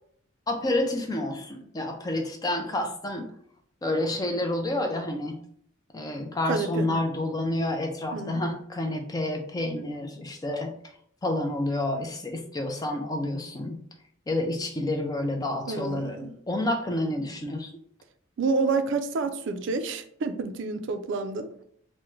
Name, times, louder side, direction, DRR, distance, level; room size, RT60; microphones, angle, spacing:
voice 1, 0.5-3.3 3.8-5.4 5.9-10.7 11.2-13.8 14.3-17.7, left 1 dB, 20° left, 4 dB, 0.4 m, -29 dB
voice 2, 6.5-7.0 8.1-8.4 15.7-16.3 18.4-21.5, right 4 dB, 60° right, 7 dB, 0.3 m, -29 dB
3.5 x 2.1 x 3.1 m, 0.64 s
head